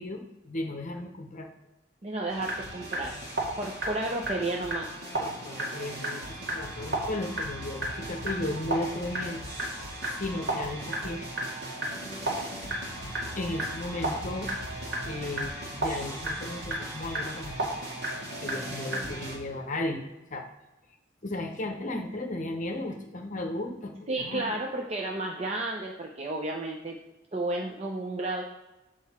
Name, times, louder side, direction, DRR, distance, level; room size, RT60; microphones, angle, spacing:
voice 1, 0.0-1.5 5.2-9.4 10.0-11.3 13.4-14.5 15.0-17.6 18.4-20.0 20.3-20.5 21.2-24.4, left 1 dB, 45° left, 4 dB, 0.8 m, -35 dB
voice 2, 2.0-3.2 3.6-4.9 24.1-27.0 27.3-28.4, right 2 dB, 35° right, 0 dB, 0.7 m, -32 dB
sound 1, 2.3-19.4, right 1 dB, 60° right, 2.0 m, -34 dB
7.9 x 4.8 x 4.3 m, 1.0 s
head